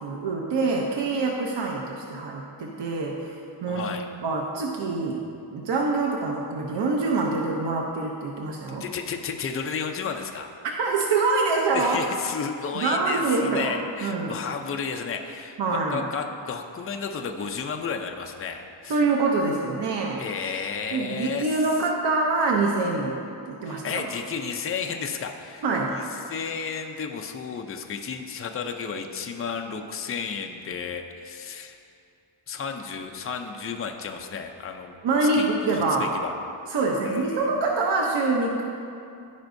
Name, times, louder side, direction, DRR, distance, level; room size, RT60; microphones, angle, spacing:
voice 1, 0.0-3.9 4.2-5.2 5.5-8.8 10.8-12.0 12.7-14.4 15.6-16.0 18.9-20.2 20.9-23.2 23.5-24.1 25.6-25.9 35.0-36.1 36.7-38.6, right 3 dB, 60° right, -1 dB, 0.7 m, -25 dB
voice 2, 3.7-4.1 8.8-10.5 11.7-19.0 20.2-21.7 23.6-25.6 25.9-31.8 32.5-35.0 35.2-36.3 37.0-37.5, left 6 dB, 30° left, 4 dB, 0.4 m, -33 dB
15.0 x 5.2 x 2.6 m, 2.6 s
wide cardioid pair, 165°, 48 cm